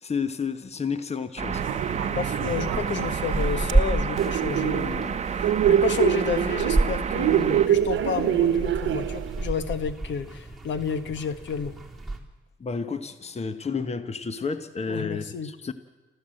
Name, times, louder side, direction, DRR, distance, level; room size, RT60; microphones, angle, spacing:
voice 1, 0.0-1.6 12.6-15.7, left 5 dB, 30° left, 11 dB, 1.2 m, -31 dB
sound 1, 1.4-12.2, right 2 dB, ahead, 3.6 m, -31 dB
sound 2, 1.4-7.7, right 6 dB, 35° right, 0.9 m, -31 dB
sound 3, 1.5-3.7 4.2-9.5, right 11 dB, 75° right, 1.0 m, -25 dB
voice 2, 2.1-11.7 14.9-15.5, left 6 dB, 65° left, 11 dB, 1.5 m, -31 dB
28.5 x 14.5 x 7.8 m, 1.2 s
cardioid pair, 90°, 20 cm